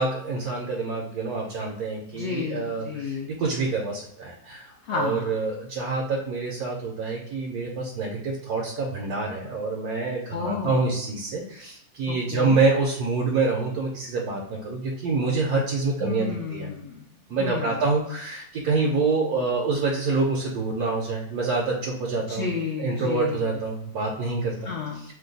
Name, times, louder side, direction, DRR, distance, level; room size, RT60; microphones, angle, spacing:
voice 1, 0.0-16.7 17.3-22.5 22.8-24.7, right 3 dB, 75° right, -1 dB, 1.1 m, -26 dB
voice 2, 2.1-3.4 4.8-5.4 10.3-10.8 12.1-12.6 16.0-17.0 17.4-17.8 22.3-23.6 24.6-25.0, left 5 dB, 80° left, -2 dB, 0.6 m, -31 dB
2.9 x 2.2 x 3.8 m, 0.72 s
omnidirectional pair, 1.7 m